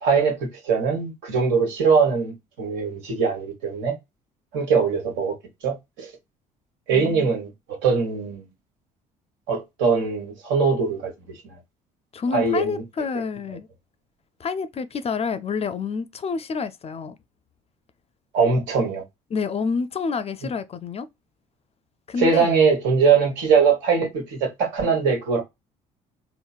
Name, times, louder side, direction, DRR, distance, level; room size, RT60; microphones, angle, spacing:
voice 1, 0.0-4.0 4.5-5.3 5.6-6.1 6.9-8.4 9.5-11.1 12.3-12.8 18.3-19.0 22.2-25.4, right 5 dB, 75° right, 1.3 m, -21 dB
voice 2, 6.9-7.3 12.1-13.7 14.4-17.2 19.3-21.1 22.1-22.5, left 5 dB, 30° left, 0.4 m, -28 dB
3.8 x 2.0 x 2.3 m
hypercardioid pair, 60°, 19 cm